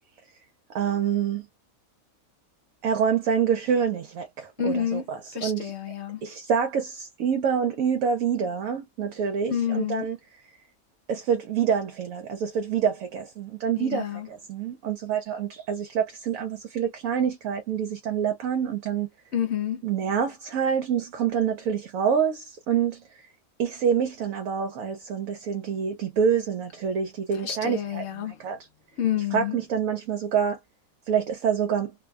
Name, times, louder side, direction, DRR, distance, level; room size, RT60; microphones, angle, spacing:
voice 1, 0.7-1.5 2.8-5.7 6.2-10.2 11.1-19.1 19.8-23.0 23.6-28.6 29.3-30.6 31.1-31.9, right 7 dB, 75° right, 1.0 m, -26 dB
voice 2, 4.6-5.1 5.3-6.2 9.5-10.1 13.8-14.3 19.3-19.8 27.4-28.4 29.0-29.6, left 9 dB, 65° left, 0.7 m, -28 dB
2.6 x 2.2 x 2.3 m
omnidirectional pair, 1.5 m